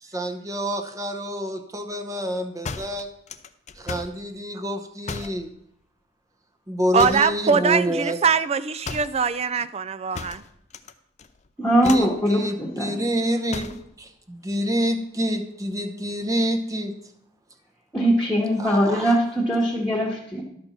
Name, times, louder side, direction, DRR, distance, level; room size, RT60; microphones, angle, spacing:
voice 1, 0.0-3.1 3.8-5.5 6.7-8.2 11.8-13.7 14.0-16.9 18.6-19.2, equal, 20° right, 4 dB, 0.8 m, -27 dB
sound 1, 2.6-4.2 5.0-5.4 7.0-7.4 8.8-9.2 10.1-10.9 11.2-11.5 11.8-12.2 13.5-13.9, left 4 dB, 35° left, 0.5 m, -35 dB
voice 2, 6.9-10.4, right 5 dB, 35° right, 15 dB, 0.4 m, -22 dB
voice 3, 11.6-13.0 17.9-20.4, equal, 5° left, -5 dB, 1.3 m, -21 dB
11.5 x 4.3 x 6.9 m, 0.73 s
head